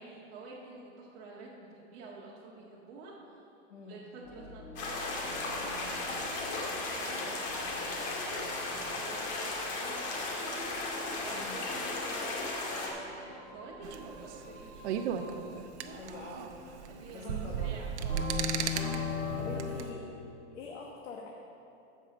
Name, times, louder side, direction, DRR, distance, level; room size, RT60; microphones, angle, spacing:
voice 1, 0.0-3.4 3.8-15.1 15.9-16.0 16.9-19.9, right 3 dB, 45° right, -5 dB, 1.8 m, -49 dB
voice 2, 3.7-4.0 11.3-11.7 16.0-16.7 17.1-17.9 19.4-20.0 20.5-21.3, left 4 dB, 85° left, -1 dB, 1.5 m, -45 dB
sound 1, 4.3-19.6, left 5 dB, 15° left, 2.1 m, -43 dB
sound 2, 4.8-12.9, left 2 dB, 45° left, 2.4 m, -35 dB
sound 3, 13.8-19.9, right 8 dB, 70° right, 0.8 m, -36 dB
14.5 x 5.4 x 6.1 m, 2.7 s
supercardioid pair, 150°, 36 cm